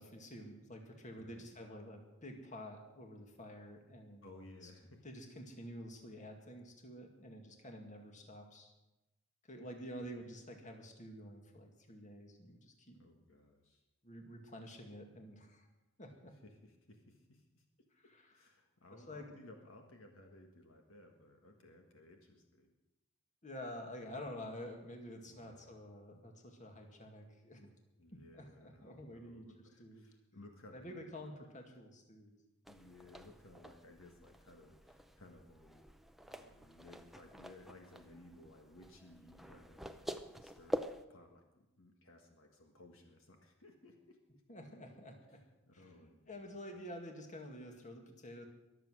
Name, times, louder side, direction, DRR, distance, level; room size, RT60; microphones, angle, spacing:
voice 1, 0.0-4.3 4.6-4.7 5.0-8.7 9.5-13.0 14.0-15.7 16.0-16.3 18.1-18.3 19.1-19.2 23.4-27.7 28.1-30.1 30.7-32.4 44.5-45.4 45.7-48.4, equal, 35° left, 3 dB, 2.1 m, -49 dB
voice 2, 1.2-1.5 4.2-5.0 12.9-13.8 16.4-17.6 18.0-22.7 25.3-25.7 28.0-31.3 32.7-35.8 36.3-44.4 45.3-46.4, left 2 dB, 65° left, 3 dB, 1.6 m, -59 dB
sound 1, 32.7-41.0, equal, ahead, 0.5 m, -47 dB
22.5 x 7.7 x 6.4 m, 0.98 s
head